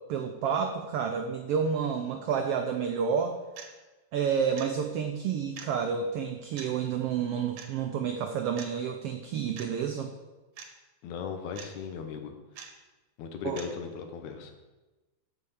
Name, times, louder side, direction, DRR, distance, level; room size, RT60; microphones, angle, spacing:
voice 1, 0.1-3.4 4.1-10.1 13.4-13.6, right 7 dB, 85° right, 5 dB, 1.3 m, -30 dB
sound 1, 3.6-3.7 4.6-4.7 5.6-5.7 6.6-6.7 7.6-7.7 8.6-8.7 9.6-9.7 10.6-10.7 11.6-11.7 12.6-12.7 13.6-13.7, right 7 dB, 65° right, 2.0 m, -43 dB
voice 2, 11.0-12.3 13.2-14.5, left 6 dB, 75° left, 6 dB, 2.3 m, -37 dB
8.3 x 5.6 x 7.0 m, 1.2 s
omnidirectional pair, 3.5 m